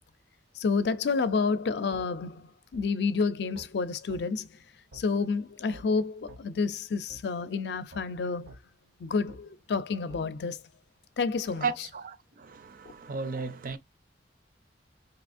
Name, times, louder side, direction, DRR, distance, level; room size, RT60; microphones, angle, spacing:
voice 1, 0.5-4.6 4.9-8.5 9.0-10.6 11.2-11.9, left 4 dB, 70° left, 0.4 m, -29 dB
sound 1, 1.9-2.1 2.7-2.9 3.5-3.7 4.1-4.2 4.9-5.1 5.7-5.9 6.3-6.4 7.1-7.2 7.9-8.1 8.5-8.6 9.3-9.4 10.1-10.2, right 1 dB, 85° right, 0.9 m, -48 dB
voice 2, 11.6-13.8, right 4 dB, 50° right, 0.5 m, -34 dB
4.2 x 2.8 x 2.5 m
head